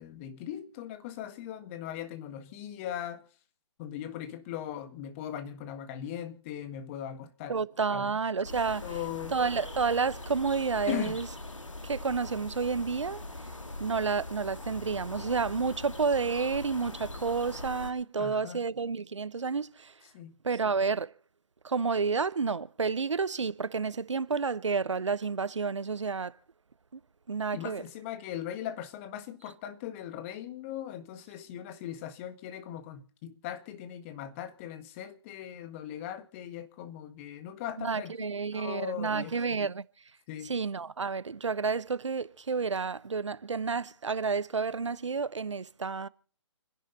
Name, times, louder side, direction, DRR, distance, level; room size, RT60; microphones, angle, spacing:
voice 1, 0.0-3.2 3.8-7.6 7.9-8.1 8.8-9.4 10.9-11.2 18.2-18.6 20.1-20.3 27.5-39.6 40.3-40.5, left 10 dB, 25° left, 1.6 m, -39 dB
voice 2, 7.5-9.0 9.3-11.3 11.8-13.2 13.8-19.9 20.4-21.1 21.6-26.3 26.9-27.0 27.3-27.8 37.8-39.8 40.4-46.1, right 5 dB, 75° right, 0.8 m, -30 dB
sound 1, 8.4-17.9, left 2 dB, 85° left, 2.1 m, -42 dB
29.0 x 10.5 x 4.1 m
figure-of-eight pair, 140°, 16 cm